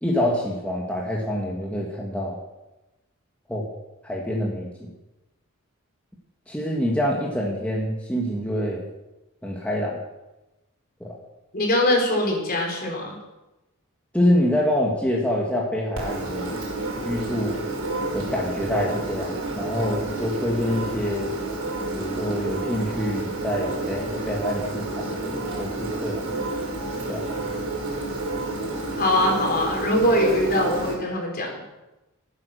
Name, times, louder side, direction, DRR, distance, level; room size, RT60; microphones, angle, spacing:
voice 1, 0.0-2.4 3.5-3.7 4.0-4.9 6.5-8.8 9.4-10.0 11.0-11.2 14.1-16.6 17.1-17.6 18.1-21.3 21.9-26.2 27.1-27.3, left 1 dB, 5° left, -3 dB, 1.8 m, -26 dB
voice 2, 11.5-13.2 29.0-31.6, left 1 dB, 45° left, 1 dB, 4.3 m, -22 dB
Engine, 16.0-30.9, right 2 dB, 80° right, 5.7 m, -30 dB
14.5 x 9.8 x 6.8 m, 1.0 s
head